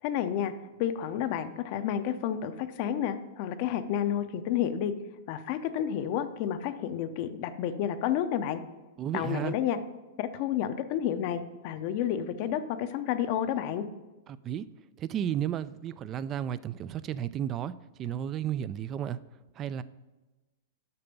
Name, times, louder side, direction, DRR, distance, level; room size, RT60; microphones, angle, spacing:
voice 1, 0.0-0.5 0.8-4.9 5.3-8.6 9.1-9.8 10.2-13.8, left 10 dB, 50° left, 10 dB, 0.6 m, -30 dB
voice 2, 9.0-9.6 14.4-14.7 15.0-17.7 18.0-19.2 19.6-19.8, right 10 dB, 30° right, 17 dB, 0.3 m, -33 dB
6.8 x 5.8 x 5.3 m, 1.1 s
hypercardioid pair, 115°, 0 cm